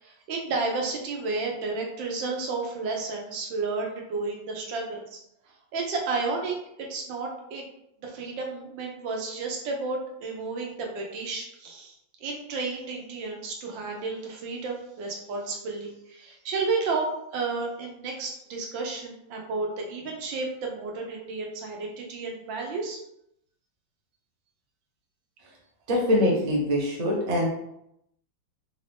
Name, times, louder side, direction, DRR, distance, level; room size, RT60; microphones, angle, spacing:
voice 1, 0.0-5.2 5.7-7.6 8.0-12.0 12.2-23.0, right 3 dB, 80° right, 0 dB, 1.5 m, -32 dB
voice 2, 25.9-27.5, left 1 dB, 40° right, -2 dB, 0.5 m, -23 dB
4.0 x 2.6 x 3.4 m, 0.79 s
omnidirectional pair, 2.0 m